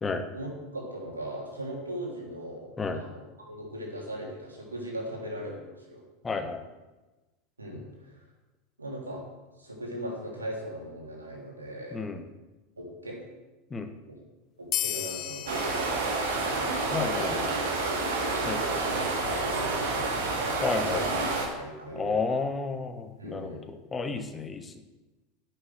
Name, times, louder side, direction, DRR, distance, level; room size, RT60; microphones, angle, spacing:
voice 1, 0.3-6.0 7.6-8.2 8.8-9.2 9.6-12.0 12.8-13.2 14.1-14.2 14.6-17.4 17.8-18.1 18.5-20.2 20.8-21.1 21.4-22.2 23.2-23.7, right 1 dB, 80° right, -2 dB, 3.3 m, -39 dB
voice 2, 6.2-6.6 11.9-12.2 13.7-13.9 16.9-17.5 18.4-18.6 20.6-21.3 21.9-24.7, left 4 dB, 20° left, 7 dB, 1.3 m, -31 dB
sound 1, 14.7-17.7, left 12 dB, 40° left, 0.6 m, -36 dB
sound 2, 15.5-21.5, right 3 dB, 60° right, 2.7 m, -29 dB
11.0 x 6.8 x 7.9 m, 1.1 s
figure-of-eight pair, 80°, 0 cm